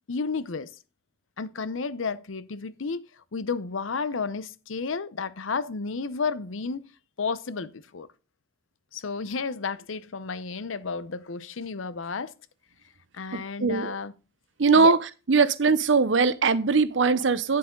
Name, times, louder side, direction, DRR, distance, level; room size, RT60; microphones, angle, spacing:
voice 1, 0.1-0.7 1.4-6.9 7.2-8.1 8.9-12.3 13.1-14.1 14.7-15.0, left 4 dB, 85° left, 0.7 m, -32 dB
voice 2, 13.3-14.0 14.6-15.0 15.3-17.6, right 4 dB, 70° right, 0.7 m, -21 dB
9.8 x 7.6 x 3.8 m
head